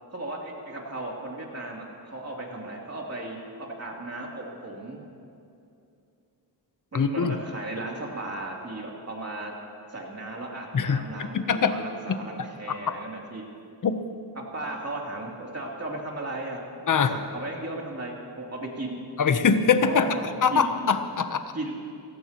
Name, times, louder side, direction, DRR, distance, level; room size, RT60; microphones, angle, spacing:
voice 1, 0.1-5.0 6.9-9.5 9.9-13.4 14.3-19.0 19.9-20.7 21.5-21.7, right 2 dB, 35° right, -2 dB, 3.1 m, -36 dB
voice 2, 6.9-7.4 10.7-12.2 13.8-14.0 16.9-17.1 19.2-20.1 20.4-21.4, left 6 dB, 45° left, 9 dB, 0.9 m, -23 dB
27.5 x 15.5 x 3.0 m, 2.6 s
cardioid pair, 80°, 43 cm